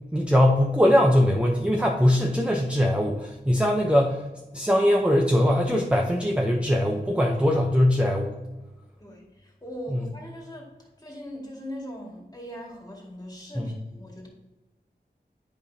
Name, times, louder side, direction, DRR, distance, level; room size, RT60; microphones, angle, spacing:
voice 1, 0.1-4.2 4.5-8.4 13.6-13.7, equal, 5° right, 0 dB, 0.6 m, -21 dB
voice 2, 9.0-14.3, equal, 20° left, -2 dB, 2.0 m, -40 dB
8.9 x 5.1 x 2.7 m, 1.1 s
wide cardioid pair, 60°, 18 cm